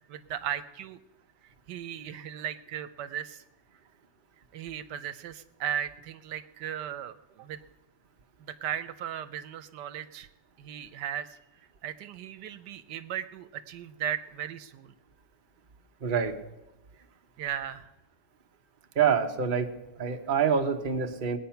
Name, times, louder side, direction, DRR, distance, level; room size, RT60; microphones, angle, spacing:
voice 1, 0.1-1.0 1.7-3.4 4.5-7.6 8.4-10.3 10.6-11.4 11.8-14.9 17.4-17.9, right 10 dB, 80° right, 11 dB, 1.3 m, -36 dB
voice 2, 16.0-16.3 18.9-19.7 20.0-21.4, right 7 dB, 35° right, 4 dB, 1.1 m, -26 dB
20.0 x 9.2 x 5.8 m, 1.0 s
omnidirectional pair, 1.8 m